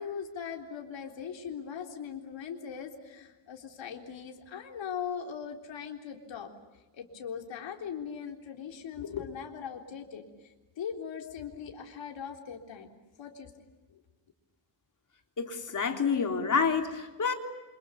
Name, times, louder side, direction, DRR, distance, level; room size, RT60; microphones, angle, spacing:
voice 1, 0.0-6.5 6.9-10.2 10.8-12.9 13.2-13.5 13.9-14.0, left 7 dB, 85° left, 2 dB, 3.8 m, -40 dB
voice 2, 15.4-17.3, left 5 dB, 45° left, 4 dB, 3.6 m, -28 dB
28.0 x 26.5 x 7.1 m, 1.2 s
wide cardioid pair, 125°, 43 cm